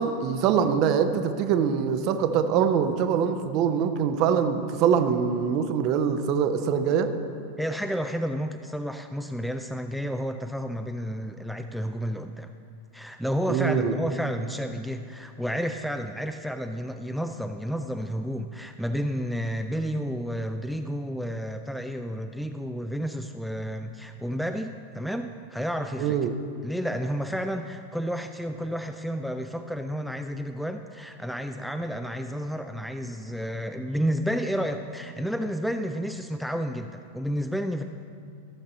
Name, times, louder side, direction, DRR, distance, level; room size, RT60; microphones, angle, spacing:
voice 1, 0.0-7.1 13.5-13.9 26.0-26.3, right 7 dB, 40° right, 9 dB, 0.7 m, -24 dB
voice 2, 7.6-12.5 12.9-26.3 26.6-37.8, equal, ahead, 7 dB, 0.3 m, -31 dB
13.5 x 6.6 x 4.2 m, 2.3 s
figure-of-eight pair, 90°, 0 cm